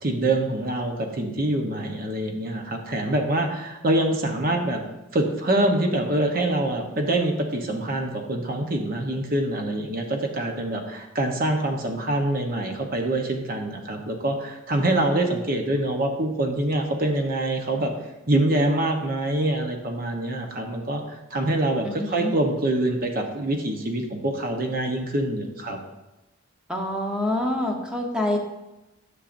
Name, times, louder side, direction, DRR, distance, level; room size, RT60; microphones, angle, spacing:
voice 1, 0.0-4.8 5.1-17.9 18.3-25.8, right 1 dB, 50° right, 3 dB, 1.0 m, -25 dB
voice 2, 21.8-22.3 26.7-28.4, left 1 dB, 5° right, 1 dB, 1.0 m, -26 dB
10.0 x 6.5 x 2.6 m, 1.0 s
head